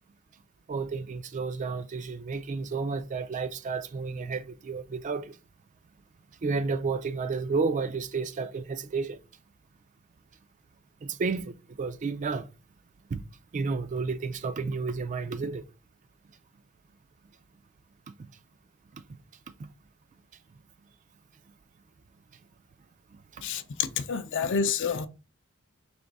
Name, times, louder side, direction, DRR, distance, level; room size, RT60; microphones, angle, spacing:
voice 1, 0.7-5.4 6.4-9.2 11.0-12.5 13.1-13.2 13.5-15.6 18.2-18.3 19.1-19.2 19.6-19.7 23.3-23.5, right 4 dB, 35° right, 0.3 m, -31 dB
voice 2, 23.4-25.1, left 6 dB, 60° left, 0.5 m, -28 dB
3.5 x 3.0 x 3.9 m
head